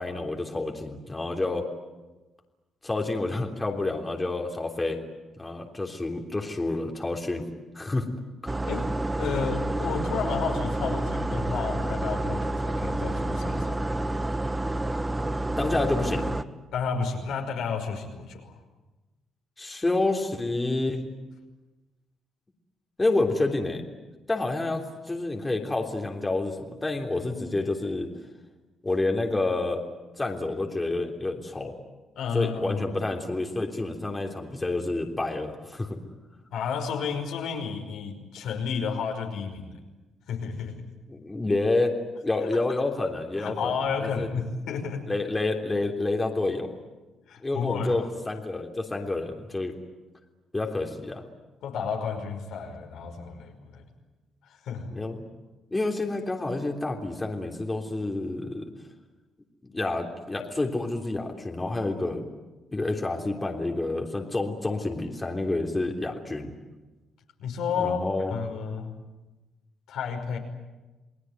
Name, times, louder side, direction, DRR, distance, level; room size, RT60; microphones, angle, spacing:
voice 1, 0.0-1.7 2.8-5.0 5.4-7.4 7.7-8.1 8.4-8.6 15.6-16.3 19.6-21.0 23.0-23.8 24.3-28.1 28.8-29.8 30.2-31.7 32.3-36.0 41.1-42.0 42.2-43.7 44.0-44.3 45.1-46.7 47.4-49.8 50.5-51.2 54.9-55.2 55.7-58.7 59.7-62.2 62.7-66.5 67.7-68.3, left 2 dB, 20° left, 2 dB, 3.4 m, -28 dB
sound 1, 8.5-16.4, right 1 dB, 15° right, 1.1 m, -29 dB
voice 2, 9.2-13.8 16.7-18.6 32.2-32.9 36.5-39.8 40.3-40.8 43.4-45.1 47.3-48.1 51.6-53.9 54.4-54.9 67.4-68.0 68.3-68.9 69.9-70.4, left 6 dB, 80° left, 2 dB, 5.5 m, -31 dB
29.0 x 19.5 x 9.4 m, 1.2 s
cardioid pair, 90°, 0 cm